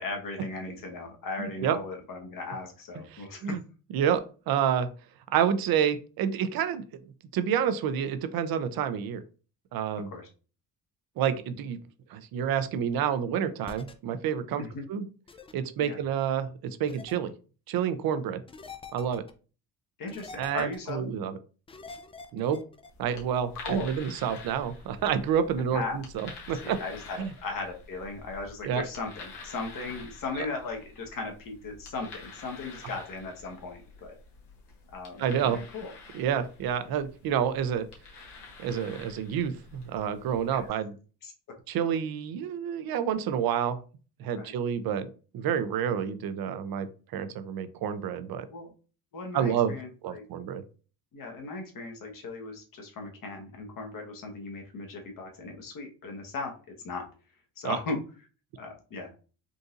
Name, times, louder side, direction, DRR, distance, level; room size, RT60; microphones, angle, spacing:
voice 1, 0.0-3.6 10.1-10.3 14.6-14.8 15.8-16.0 20.0-21.1 23.5-23.9 25.7-26.0 26.6-34.2 34.9-35.9 40.5-40.7 41.2-41.3 44.3-44.5 48.5-48.7 49.1-50.2 51.1-56.5 56.8-57.0 57.6-58.0 58.6-59.1, left 3 dB, 55° left, 2 dB, 1.2 m, -37 dB
voice 2, 1.4-1.8 3.1-3.6 3.9-4.9 5.3-6.8 7.3-9.2 9.7-10.1 11.2-11.8 12.1-14.6 14.9-15.1 15.5-16.5 16.8-17.3 17.7-18.4 18.9-19.2 20.4-21.4 22.3-22.6 23.0-26.8 27.2-27.3 28.6-28.8 35.2-35.6 36.1-37.9 38.6-40.9 41.7-43.8 44.2-45.1 45.3-48.5 49.3-49.7 50.0-50.6 57.6-57.8, right 8 dB, 60° right, 11 dB, 0.6 m, -29 dB
sound 1, 13.6-13.9 15.3-15.5 16.9-17.2 18.5-19.3 20.1-20.9 21.7-22.9, left 4 dB, 15° left, 0.3 m, -45 dB
sound 2, 22.9-40.7, left 4 dB, 75° left, 1.3 m, -48 dB
3.9 x 2.7 x 2.5 m, 0.36 s
cardioid pair, 85°, 41 cm